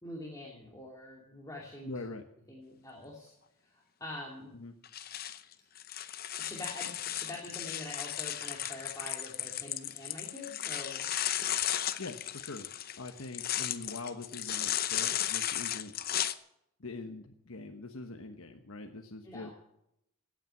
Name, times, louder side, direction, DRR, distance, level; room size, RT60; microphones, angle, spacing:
voice 1, 0.0-1.9 2.5-3.3 3.7-4.5 6.4-11.1 19.2-19.5, left 1 dB, 15° left, -2 dB, 2.5 m, -45 dB
voice 2, 1.8-2.2 4.5-4.7 12.0-12.7 13.0-15.9 16.8-19.5, left 3 dB, 80° left, 4 dB, 1.2 m, -43 dB
sound 1, 4.8-16.3, left 11 dB, 45° left, 0.7 m, -35 dB
17.0 x 9.0 x 7.7 m, 0.79 s
head